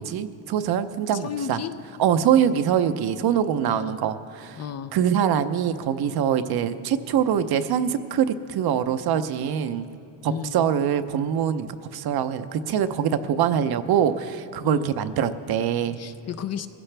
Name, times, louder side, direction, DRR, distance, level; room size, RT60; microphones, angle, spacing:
voice 1, 0.0-1.6 2.0-4.6 4.9-9.8 10.2-16.0, right 9 dB, 55° right, 10 dB, 0.8 m, -24 dB
voice 2, 1.1-1.7 3.7-4.0 4.6-4.9 10.3-10.7 14.6-15.0 15.9-16.7, left 8 dB, 40° left, 11 dB, 0.5 m, -33 dB
21.5 x 16.0 x 3.4 m, 2.4 s
cardioid pair, 135°, 44 cm